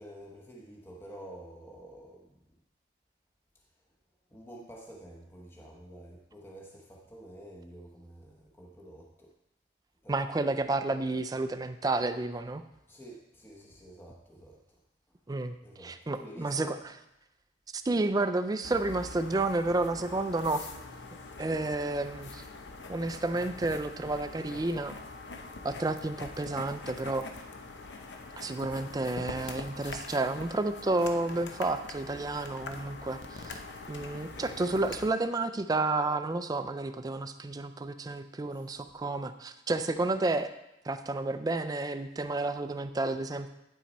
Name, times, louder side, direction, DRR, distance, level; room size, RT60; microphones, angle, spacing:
voice 1, 0.0-2.4 4.3-9.3 10.0-10.2 12.9-14.6 15.6-16.8 34.1-34.6 38.5-38.7, right 1 dB, 15° left, -2 dB, 0.9 m, -49 dB
voice 2, 10.1-12.6 15.3-15.5 15.8-16.8 17.8-20.7 21.4-22.4 22.9-24.9 25.6-27.3 28.4-33.6 33.9-40.5 40.8-43.5, right 2 dB, 20° right, 9 dB, 0.4 m, -31 dB
sound 1, 18.6-35.1, left 3 dB, 70° left, 0.7 m, -44 dB
8.9 x 5.9 x 4.1 m, 0.88 s
head